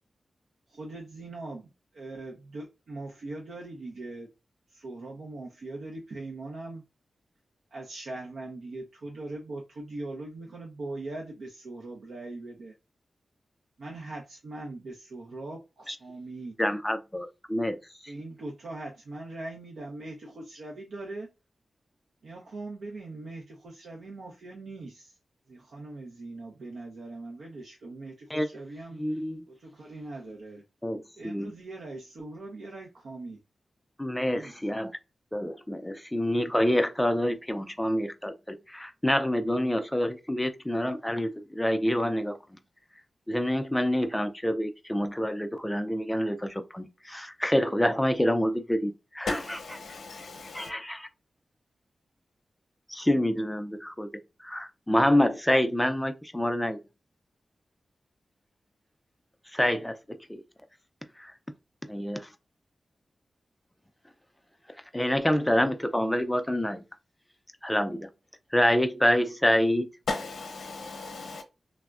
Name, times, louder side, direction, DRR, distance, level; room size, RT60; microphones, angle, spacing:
voice 1, 0.7-4.3 4.7-6.8 7.7-12.7 13.8-16.5 18.1-21.3 22.2-25.2 25.5-29.0 29.5-30.6 31.2-33.4 34.3-34.6, right 2 dB, 80° right, 0.6 m, -41 dB
voice 2, 16.6-17.8 28.3-28.5 29.0-29.4 30.8-31.5 34.0-34.9 35.3-42.4 43.3-49.4 50.5-51.0 52.9-54.1 54.4-56.8 59.5-60.0 60.3-60.4 61.9-62.3 64.9-66.8 67.6-68.1 68.5-69.9, left 1 dB, 5° left, 0.3 m, -27 dB
voice 3, 49.3-50.7 70.1-71.4, left 3 dB, 75° left, 0.7 m, -36 dB
3.4 x 2.0 x 2.3 m
wide cardioid pair, 140°, 0 cm